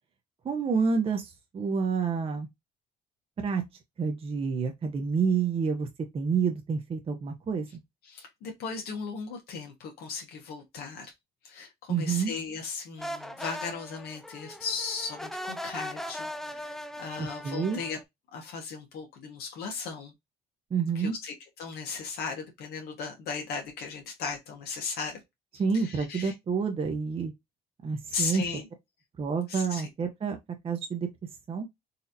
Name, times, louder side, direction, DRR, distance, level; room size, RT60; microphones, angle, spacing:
voice 1, 0.4-2.5 3.4-3.6 4.0-5.9 6.1-7.7 11.9-12.3 17.2-17.8 20.7-21.1 25.6-27.3 27.8-28.4 29.2-30.4 30.6-31.1 31.5-31.7, right 5 dB, 35° right, 0.7 m, -28 dB
voice 2, 8.0-11.1 11.4-18.0 18.3-20.1 20.9-25.2 25.7-26.3 28.1-28.7 29.5-29.9, left 5 dB, 80° left, 1.2 m, -37 dB
sound 1, 13.0-18.0, equal, ahead, 0.4 m, -39 dB
4.1 x 2.7 x 2.5 m
cardioid pair, 100°, 16 cm